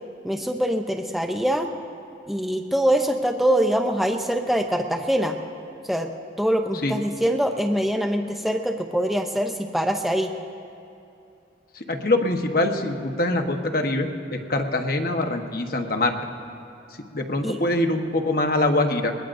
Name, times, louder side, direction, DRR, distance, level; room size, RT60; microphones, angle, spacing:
voice 1, 0.2-1.7 2.3-5.4 5.8-6.1 6.4-10.3 17.4-17.6, equal, ahead, 3 dB, 0.6 m, -23 dB
voice 2, 11.7-16.1 17.1-19.1, left 2 dB, 50° left, 4 dB, 1.1 m, -24 dB
21.0 x 20.5 x 2.6 m, 2.7 s
head